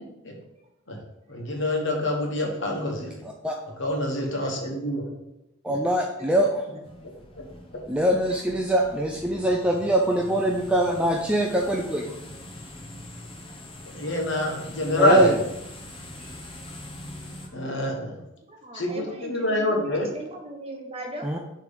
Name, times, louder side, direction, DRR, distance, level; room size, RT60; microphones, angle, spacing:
voice 1, 1.3-3.2 3.8-5.2 7.3-7.4 13.9-15.4 17.5-18.2 18.7-20.1, left 1 dB, 55° left, 0 dB, 1.3 m, -26 dB
voice 2, 5.6-6.5 7.9-12.1 15.0-15.3 21.2-21.4, right 1 dB, 5° right, 0 dB, 0.3 m, -23 dB
sound 1, 6.8-17.5, left 1 dB, 25° left, 0.7 m, -42 dB
voice 3, 18.5-21.4, right 1 dB, 25° right, 2 dB, 0.9 m, -38 dB
6.7 x 3.3 x 5.2 m, 0.91 s
head